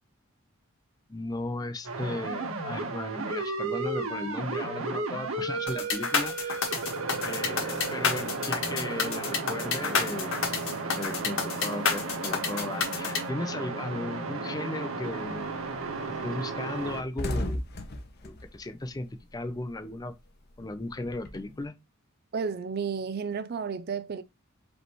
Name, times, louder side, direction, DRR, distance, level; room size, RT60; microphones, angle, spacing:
voice 1, 1.1-6.6 7.2-10.4 11.0-15.5 16.1-17.6 18.2-20.1 20.6-21.8, left 2 dB, 20° left, 0.5 m, -36 dB
sound 1, 1.8-17.0, right 3 dB, 80° right, 1.1 m, -34 dB
sound 2, 5.7-13.2, left 5 dB, 70° left, 1.6 m, -29 dB
sound 3, 15.1-15.4 15.8-15.9 16.2-16.3 16.6-19.6 19.9-21.6, left 1 dB, 50° left, 0.8 m, -36 dB
voice 2, 22.3-24.2, right 5 dB, 50° right, 0.4 m, -32 dB
5.0 x 3.3 x 3.1 m
head